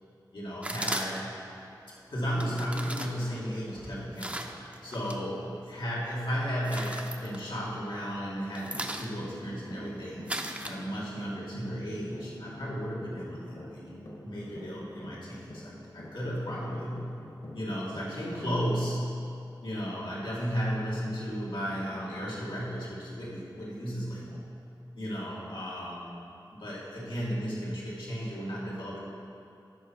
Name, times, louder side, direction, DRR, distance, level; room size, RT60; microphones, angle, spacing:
voice 1, 0.3-1.3 2.1-10.3 10.6-17.2 17.5-19.1 19.6-24.6 24.9-26.1 26.6-29.0, equal, 90° left, -7 dB, 2.3 m, -34 dB
sound 1, 0.6-1.4 2.3-5.2 5.6-6.1 6.4-8.0 8.3-11.3, right 1 dB, 15° right, 0.7 m, -38 dB
sound 2, 8.5-18.6, equal, 65° left, 1.8 m, -46 dB
13.0 x 5.7 x 4.7 m, 2.6 s
wide cardioid pair, 50°, 8 cm